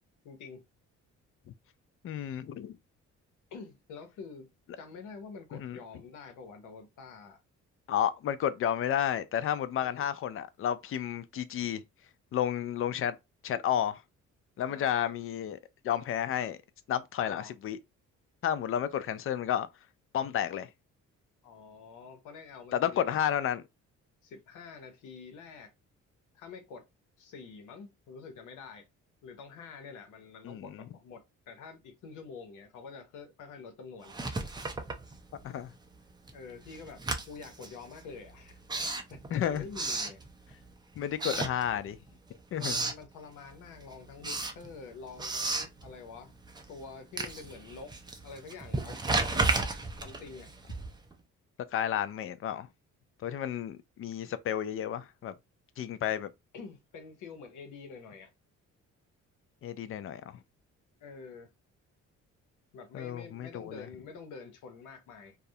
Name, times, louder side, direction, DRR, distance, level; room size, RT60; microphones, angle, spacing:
voice 1, 0.2-0.6 3.5-4.5 4.8-7.4 9.8-10.0 14.6-15.1 17.2-17.5 21.4-23.2 24.2-25.7 26.3-26.8 27.2-28.9 29.2-34.2 36.3-38.5 38.8-40.2 41.2-41.5 42.6-46.3 46.7-47.9 48.2-49.6 50.0-50.5 56.5-58.3 61.0-61.5 62.7-65.4, left 5 dB, 85° left, 0.8 m, -47 dB
voice 2, 2.0-2.8 5.5-5.8 7.9-11.8 12.3-13.2 13.4-14.0 14.6-15.6 15.8-16.6 16.9-17.8 18.4-19.7 20.1-20.7 22.7-23.6 30.4-30.8 35.4-35.7 39.3-39.6 41.0-42.0 42.5-42.8 51.7-52.7 53.2-55.3 55.8-56.3 59.6-60.4 62.9-63.9, left 10 dB, 45° left, 0.4 m, -31 dB
Writing, 34.0-35.6 35.9-40.7 41.1-42.1 42.4-43.1 43.5-51.1, right 3 dB, 15° right, 0.4 m, -34 dB
2.3 x 2.0 x 2.7 m
cardioid pair, 90°, 30 cm